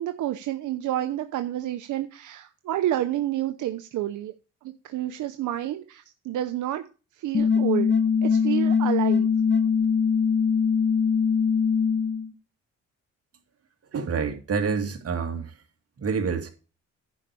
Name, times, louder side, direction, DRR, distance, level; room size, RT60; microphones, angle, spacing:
voice 1, 0.0-4.3 4.8-6.8 7.2-7.9 8.2-9.3, right 13 dB, 80° right, 0.9 m, -29 dB
sound 1, 7.3-12.3, left 6 dB, 35° left, 2.0 m, -22 dB
voice 2, 13.9-15.5 16.0-16.5, right 5 dB, 50° right, 2.8 m, -27 dB
10.5 x 4.9 x 6.9 m
cardioid pair, 90°, 30 cm